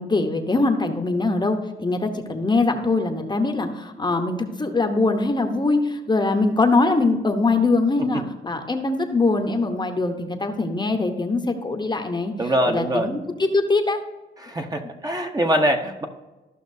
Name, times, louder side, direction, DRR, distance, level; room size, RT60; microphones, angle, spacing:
voice 1, 0.0-14.0, left 3 dB, 20° left, 5 dB, 0.9 m, -22 dB
voice 2, 12.4-13.1 14.4-16.1, right 1 dB, 20° right, 4 dB, 0.9 m, -23 dB
14.0 x 5.7 x 2.7 m, 1.1 s
cardioid pair, 90°, 20 cm